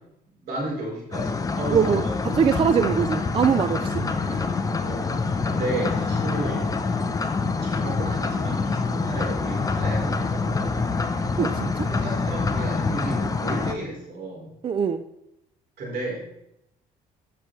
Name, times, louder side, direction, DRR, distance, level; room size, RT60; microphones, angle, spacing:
voice 1, 0.4-2.4 3.9-4.4 4.8-6.7 7.6-11.0 11.9-14.5 15.8-16.4, right 1 dB, 70° right, -2 dB, 3.9 m, -33 dB
sound 1, 1.1-13.7, left 4 dB, 20° left, 0.7 m, -26 dB
voice 2, 1.7-4.5 11.3-11.9 14.6-15.0, right 7 dB, 30° right, 10 dB, 0.4 m, -23 dB
13.5 x 6.1 x 3.2 m, 0.82 s
cardioid pair, 110°, 17 cm